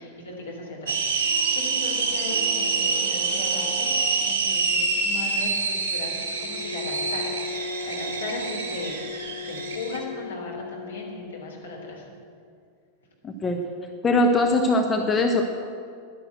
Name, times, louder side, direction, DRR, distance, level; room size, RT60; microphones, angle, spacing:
voice 1, 0.0-9.0 9.5-12.1, left 2 dB, 70° left, -1 dB, 3.2 m, -38 dB
sound 1, 0.9-10.0, right 4 dB, 55° right, 2.4 m, -26 dB
sound 2, 1.0-12.2, left 3 dB, 85° left, 2.2 m, -38 dB
voice 2, 13.2-13.6 14.0-15.5, left 2 dB, 20° left, 3 dB, 1.0 m, -21 dB
11.0 x 10.0 x 7.9 m, 2.3 s
figure-of-eight pair, 90°, 0 cm